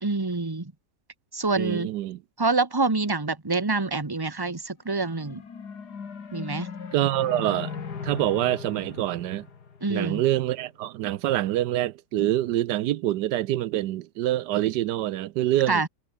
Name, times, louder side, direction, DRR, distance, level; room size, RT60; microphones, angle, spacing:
voice 1, 0.0-0.7 1.3-1.9 2.4-5.4 6.3-6.7 9.8-10.2 15.7-15.9, right 3 dB, 15° right, 1.4 m, -26 dB
voice 2, 1.6-2.2 6.9-7.8 8.0-9.5 9.9-15.8, right 14 dB, 75° right, 1.2 m, -26 dB
sound 1, 4.9-10.4, left 6 dB, 65° left, 2.6 m, -39 dB
omnidirectional pair, 1.9 m